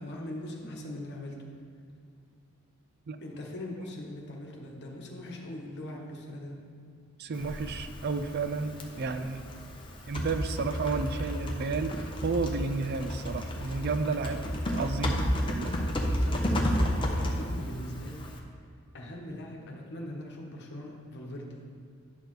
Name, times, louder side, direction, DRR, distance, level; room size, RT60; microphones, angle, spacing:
voice 1, 0.0-1.5 3.2-6.7 16.0-18.3 18.9-21.7, left 1 dB, 50° left, 0 dB, 1.2 m, -41 dB
voice 2, 7.2-9.4 10.1-11.9 12.2-15.8, right 4 dB, 45° right, 9 dB, 0.4 m, -32 dB
Typing, 7.3-18.4, equal, 20° left, 0.8 m, -32 dB
10.5 x 6.5 x 3.2 m, 2.3 s
head